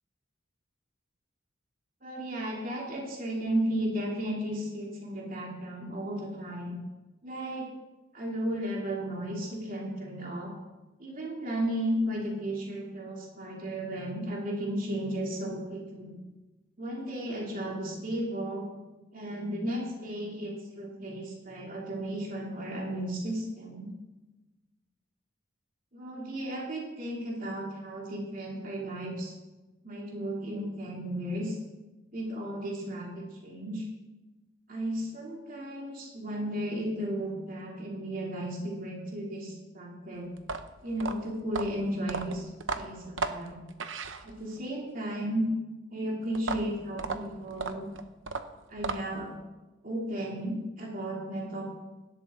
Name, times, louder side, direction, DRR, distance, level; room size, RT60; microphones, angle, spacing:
voice 1, 2.0-6.7 7.2-7.7 8.1-10.5 11.0-16.2 16.8-18.7 19.1-23.9 25.9-29.3 29.8-31.6 32.1-33.9 34.7-40.3 40.8-42.5 42.7-43.6 44.2-45.4 45.9-47.9 48.7-49.3 49.8-51.6, right 1 dB, 45° right, -2 dB, 3.0 m, -34 dB
sound 1, 40.4-44.7 46.3-49.3, right 4 dB, 70° right, 0.9 m, -35 dB
17.5 x 12.0 x 3.8 m, 1.1 s
head